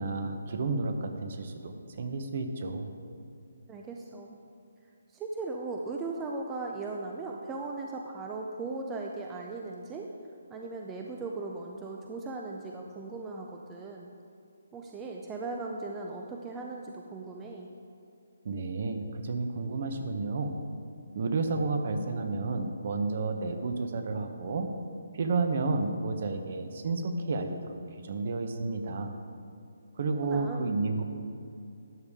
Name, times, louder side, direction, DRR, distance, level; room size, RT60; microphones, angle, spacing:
voice 1, 0.0-2.9 18.4-20.6 21.1-24.7 25.1-29.1 30.0-31.0, right 3 dB, 40° right, 6 dB, 0.9 m, -31 dB
voice 2, 3.7-4.4 5.1-10.1 10.5-14.1 14.7-17.7 30.2-30.7, right 3 dB, 10° right, 0 dB, 0.4 m, -38 dB
12.5 x 8.2 x 3.6 m, 2.6 s
hypercardioid pair, 170°, 0 cm